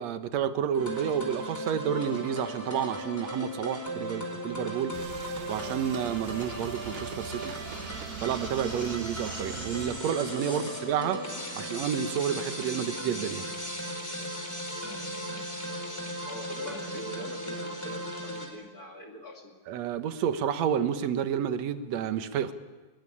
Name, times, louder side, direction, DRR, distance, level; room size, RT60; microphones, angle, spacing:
voice 1, 0.0-4.9 5.5-7.5 8.2-11.2 11.6-13.5 19.7-22.5, right 8 dB, 65° right, 10 dB, 1.8 m, -30 dB
sound 1, 0.7-18.5, equal, 5° left, 4.2 m, -37 dB
sound 2, 4.9-10.0, right 11 dB, 90° right, 2.9 m, -42 dB
voice 2, 10.4-10.7 16.2-19.6, left 1 dB, 30° left, 4 dB, 2.1 m, -43 dB
21.0 x 21.0 x 9.9 m, 1.3 s
omnidirectional pair, 4.4 m